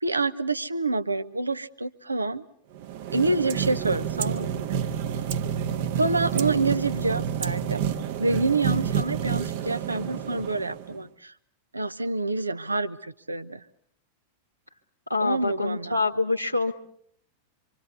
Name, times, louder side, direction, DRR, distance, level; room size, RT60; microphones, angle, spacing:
voice 1, 0.0-2.4 3.1-4.6 6.0-7.8 8.2-11.3 11.7-13.6 15.2-16.0, right 3 dB, 80° right, 10 dB, 1.0 m, -27 dB
sound 1, 2.7-11.0, right 9 dB, 50° right, 1.2 m, -29 dB
voice 2, 15.1-16.7, left 3 dB, 90° left, 3 dB, 1.7 m, -25 dB
26.5 x 25.0 x 7.0 m, 0.67 s
figure-of-eight pair, 90°, 0 cm